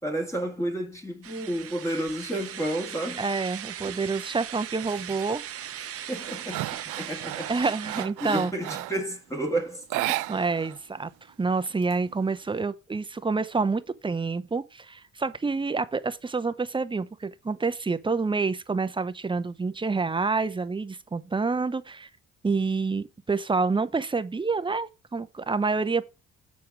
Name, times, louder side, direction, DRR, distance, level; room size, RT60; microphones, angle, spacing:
voice 1, 0.0-3.3 3.8-4.0 6.1-7.6 8.0-10.2, right 1 dB, 10° left, 2.0 m, -31 dB
sound 1, 1.2-8.1, right 10 dB, 50° right, 0.7 m, -39 dB
voice 2, 3.2-5.5 7.5-8.5 10.3-11.1 11.4-22.1 22.4-26.0, right 4 dB, 15° right, 0.7 m, -28 dB
sound 2, 4.9-5.2 5.7-9.1 9.8-10.8 11.0-11.1 11.5-12.5, right 17 dB, 90° right, 0.5 m, -34 dB
7.0 x 4.6 x 6.1 m
cardioid pair, 90°, 30 cm